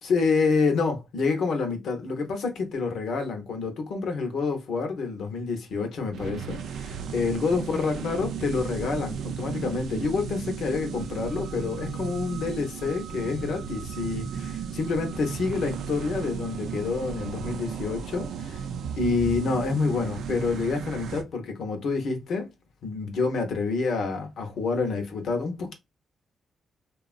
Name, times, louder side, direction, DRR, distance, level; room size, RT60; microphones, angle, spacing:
voice 1, 0.0-18.6 19.0-22.5 22.8-25.7, left 4 dB, 75° left, 0.7 m, -28 dB
sound 1, 6.1-21.2, right 7 dB, 80° right, 0.4 m, -35 dB
2.8 x 2.3 x 2.4 m
cardioid pair, 70°, 0 cm